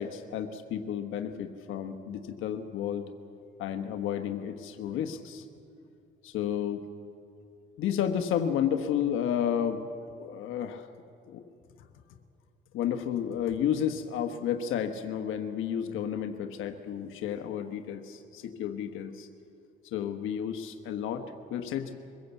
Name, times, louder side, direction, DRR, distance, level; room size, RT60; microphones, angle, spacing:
voice 1, 0.0-3.1 3.6-5.4 6.2-6.8 7.8-9.9 10.2-10.9 11.3-11.4 12.7-19.3 19.9-21.9, left 9 dB, 85° left, 6 dB, 1.2 m, -31 dB
23.0 x 16.0 x 8.1 m, 2.6 s
cardioid pair, 90°, 20 cm